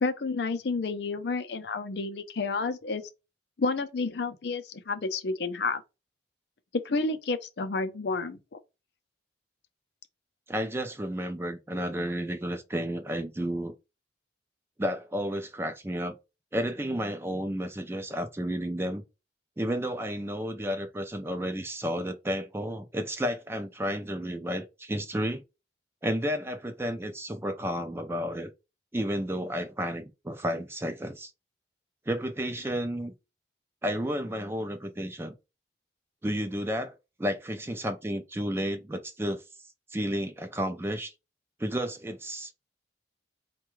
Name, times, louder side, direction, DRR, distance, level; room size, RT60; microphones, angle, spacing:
voice 1, 0.0-3.0 3.6-5.8 6.7-8.6, left 3 dB, 60° left, 0.5 m, -30 dB
voice 2, 10.5-13.7 14.8-16.2 16.5-19.0 19.6-25.4 26.0-28.5 28.9-31.3 32.1-33.1 33.8-35.3 36.2-39.4 39.9-41.1 41.6-42.5, equal, 15° right, 0.4 m, -32 dB
4.6 x 2.2 x 3.1 m
head